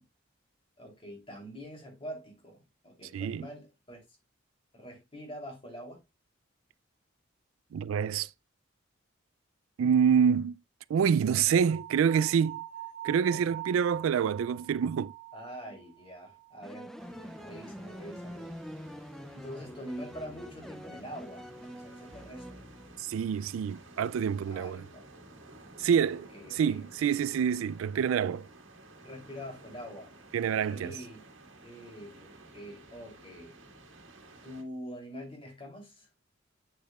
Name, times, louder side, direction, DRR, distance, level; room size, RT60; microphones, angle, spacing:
voice 1, 0.8-4.0 4.7-6.0 13.3-13.5 15.3-18.5 19.3-21.5 21.7-22.6 24.5-25.0 26.1-26.8 29.0-31.2 31.6-33.6 34.4-36.1, equal, 25° left, 3.0 m, -45 dB
voice 2, 3.1-3.5 7.7-8.3 9.8-10.6 10.9-12.6 13.0-15.1 23.0-24.8 25.8-28.5 30.3-31.0, right 7 dB, 80° right, 0.3 m, -27 dB
sound 1, 11.6-16.7, right 15 dB, 40° right, 2.0 m, -44 dB
sound 2, 16.6-23.3, equal, ahead, 0.4 m, -45 dB
sound 3, 17.0-34.6, right 2 dB, 65° right, 1.7 m, -53 dB
8.3 x 6.5 x 2.3 m
head